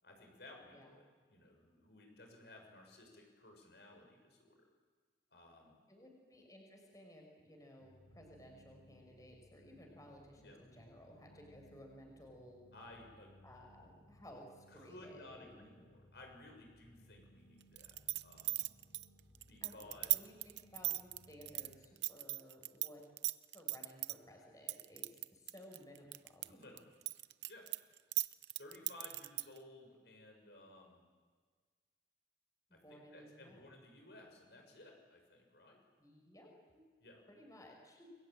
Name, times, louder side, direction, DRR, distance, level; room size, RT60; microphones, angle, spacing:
voice 1, 0.0-4.7 5.3-5.7 10.4-10.6 12.7-13.4 14.7-18.0 18.2-18.6 19.5-20.2 26.4-26.9 27.5-27.6 28.6-31.0 32.7-35.8 37.0-37.2, left 2 dB, 70° left, 2 dB, 6.6 m, -57 dB
voice 2, 5.9-12.6 13.4-15.7 19.6-23.0 23.5-26.7 32.7-33.7 36.0-36.8 37.3-38.1, equal, 20° left, 1 dB, 5.7 m, -57 dB
sound 1, 7.8-21.9, equal, 85° left, 7.0 m, -65 dB
sound 2, 17.8-22.9 23.2-24.1 24.7-26.5 26.8-29.6, right 17 dB, 80° right, 0.7 m, -37 dB
29.5 x 22.5 x 9.0 m, 1.5 s
head